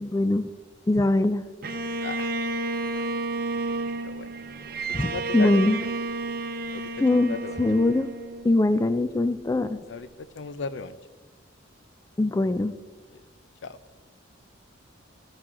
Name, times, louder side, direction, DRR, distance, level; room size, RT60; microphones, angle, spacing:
voice 1, 0.0-0.5 0.9-1.4 4.9-5.8 7.0-8.1 8.4-9.8 12.2-12.7, left 2 dB, 15° left, 12 dB, 0.3 m, -22 dB
Bowed string instrument, 1.6-8.9, right 3 dB, 50° right, 0.7 m, -31 dB
voice 2, 2.0-2.3 3.0-3.1 4.0-4.3 4.9-5.6 6.7-7.6 9.9-11.0 13.1-13.2 13.6-13.8, left 4 dB, 70° left, 14 dB, 0.5 m, -37 dB
12.5 x 9.6 x 3.7 m, 1.2 s
head